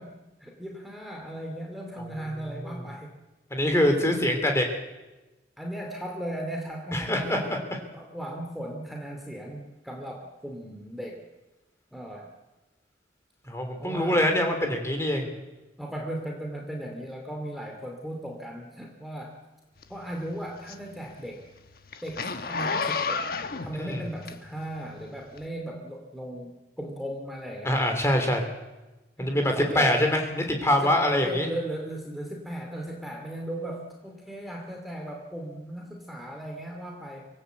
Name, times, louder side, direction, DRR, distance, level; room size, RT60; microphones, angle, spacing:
voice 1, 0.0-3.2 5.6-7.5 7.9-11.3 11.9-12.3 13.8-14.3 15.8-19.4 19.9-21.5 22.0-23.3 23.6-27.8 29.2-30.1 30.8-37.3, right 1 dB, ahead, 1 dB, 2.5 m, -37 dB
voice 2, 3.5-4.6 6.9-7.6 13.5-15.3 23.8-24.0 27.6-28.5 29.2-31.5, left 1 dB, 15° left, 3 dB, 3.3 m, -24 dB
Zipper (clothing), 19.8-24.8 25.3-25.4, left 4 dB, 55° left, 1.2 m, -31 dB
24.5 x 15.0 x 8.3 m, 1.1 s
head